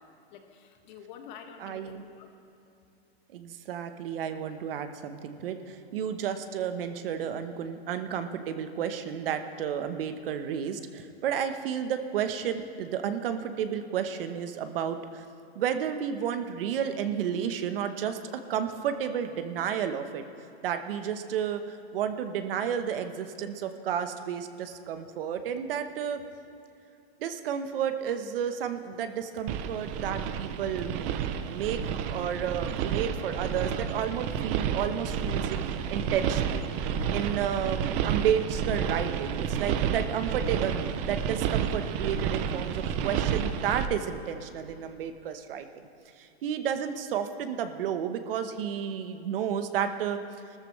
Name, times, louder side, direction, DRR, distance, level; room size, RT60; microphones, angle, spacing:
voice 1, 0.0-2.3, left 7 dB, 45° left, 4 dB, 1.6 m, -48 dB
voice 2, 1.6-2.0 3.3-15.2 15.5-20.2 20.6-26.2 27.2-31.2 31.5-36.7 37.1-45.8 46.2-50.2, right 8 dB, 60° right, 8 dB, 1.0 m, -32 dB
sound 1, 29.5-43.9, right 8 dB, 20° right, 0.4 m, -30 dB
19.0 x 13.5 x 3.2 m, 2.8 s
hypercardioid pair, 145°, 32 cm